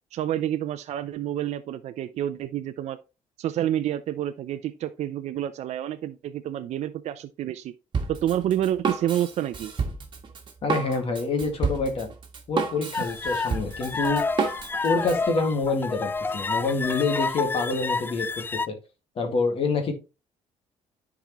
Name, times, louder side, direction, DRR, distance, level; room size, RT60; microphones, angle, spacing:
voice 1, 0.1-3.0 3.4-7.7 8.1-9.7, right 11 dB, 65° right, 0.5 m, -28 dB
Drum kit, 7.9-15.2, right 5 dB, 40° right, 1.6 m, -30 dB
voice 2, 10.6-12.1 12.5-14.2 14.8-18.8 19.2-19.9, left 3 dB, 50° left, 2.0 m, -27 dB
sound 1, 12.9-18.7, left 4 dB, 15° left, 0.3 m, -29 dB
10.5 x 4.8 x 3.0 m
cardioid pair, 110°, 12 cm